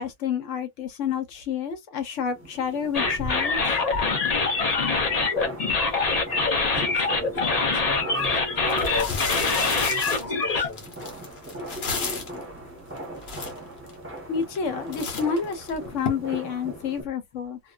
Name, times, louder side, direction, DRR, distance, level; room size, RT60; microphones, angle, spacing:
voice 1, 0.0-3.6 14.3-17.6, left 6 dB, 90° left, 1.1 m, -29 dB
sound 1, 2.3-17.0, right 1 dB, 10° right, 0.9 m, -39 dB
sound 2, 2.9-10.7, left 4 dB, 40° left, 0.6 m, -24 dB
voice 2, 6.4-10.8, left 1 dB, 15° left, 0.9 m, -36 dB
sound 3, 8.1-8.2 8.7-12.4 13.0-13.1 13.2-13.9 14.4-14.7 14.9-16.1, left 4 dB, 60° left, 1.0 m, -33 dB
2.4 x 2.3 x 2.3 m
omnidirectional pair, 1.2 m